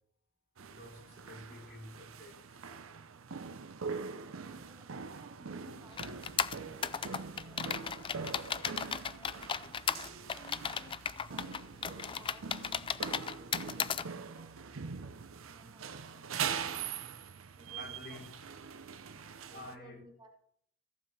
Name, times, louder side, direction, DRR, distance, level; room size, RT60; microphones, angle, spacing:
voice 1, 0.6-2.6 4.5-4.6 17.8-18.3 19.5-20.0, left 1 dB, 50° left, -2 dB, 4.3 m, -49 dB
sound 1, 0.6-19.7, right 6 dB, 80° right, 0.7 m, -43 dB
voice 2, 4.4-6.2 6.8-7.9 8.7-12.6 13.1-14.5 15.3-16.3 17.5-18.3 19.1-20.3, right 1 dB, 20° right, 0 dB, 2.0 m, -59 dB
sound 2, 6.0-14.0, left 7 dB, 25° left, 0.3 m, -35 dB
14.5 x 7.3 x 4.2 m, 0.64 s
head